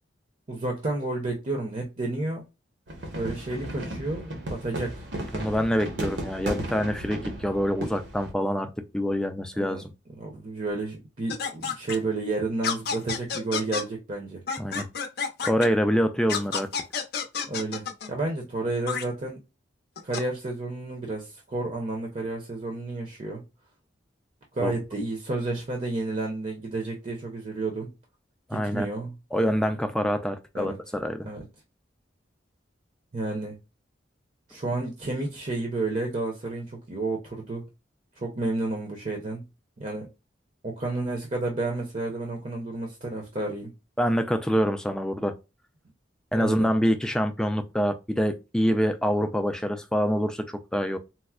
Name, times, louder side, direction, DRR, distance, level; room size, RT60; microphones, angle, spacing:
voice 1, 0.5-2.4 3.1-5.1 9.5-9.8 10.2-14.4 17.5-19.4 20.0-23.4 24.5-27.9 28.5-29.1 30.5-30.8 31.3-31.4 33.1-33.5 34.5-37.7 38.2-39.4 39.8-40.1 40.6-43.7 46.3-46.7, right 2 dB, 40° right, 0.7 m, -31 dB
sound 1, 2.9-8.3, right 1 dB, 75° right, 1.0 m, -35 dB
voice 2, 5.3-9.9 14.6-14.9 15.4-16.7 24.6-24.7 28.5-28.9 29.3-31.3 44.0-45.3 46.3-51.0, equal, 5° left, 0.3 m, -26 dB
sound 2, 11.3-12.0 12.6-13.8 14.5-15.7 16.3-18.1 18.9-19.0 20.0-20.2, left 6 dB, 60° left, 0.5 m, -30 dB
4.2 x 2.0 x 2.3 m
head